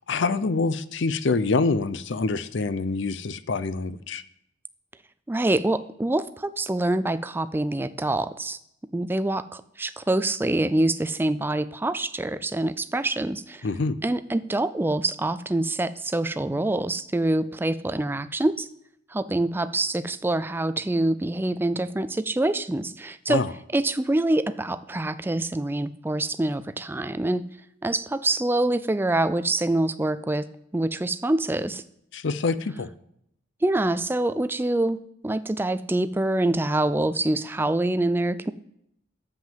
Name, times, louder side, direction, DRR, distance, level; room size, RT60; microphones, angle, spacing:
voice 1, 0.1-4.2 13.6-14.0 23.3-23.5 32.1-32.9, left 3 dB, 60° left, 15 dB, 0.5 m, -26 dB
voice 2, 5.3-8.6 8.9-13.7 14.0-18.7 19.1-23.4 23.7-27.4 27.8-30.5 30.7-31.8 33.6-38.5, right 2 dB, 10° right, 13 dB, 0.3 m, -25 dB
8.8 x 7.4 x 7.5 m, 0.78 s
head